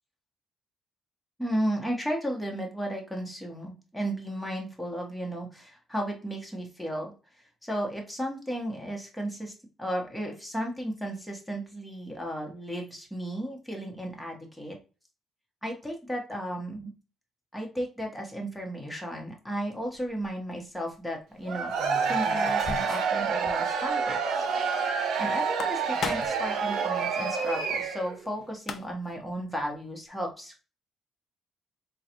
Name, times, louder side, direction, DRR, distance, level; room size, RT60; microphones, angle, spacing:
voice 1, 1.4-7.1 7.6-9.5 9.8-14.7 15.6-16.9 17.5-21.7 22.1-24.4 25.2-30.6, equal, 5° left, 0 dB, 1.3 m, -34 dB
sound 1, 19.9-20.3 21.8-23.2 23.5-23.6 23.9-24.0 25.4-26.5 28.3-28.4 28.6-29.1, left 6 dB, 60° left, 0.4 m, -37 dB
Cheering / Crowd, 21.4-28.2, right 5 dB, 80° right, 0.6 m, -28 dB
3.8 x 2.4 x 2.9 m, 0.34 s
cardioid pair, 90°, 0 cm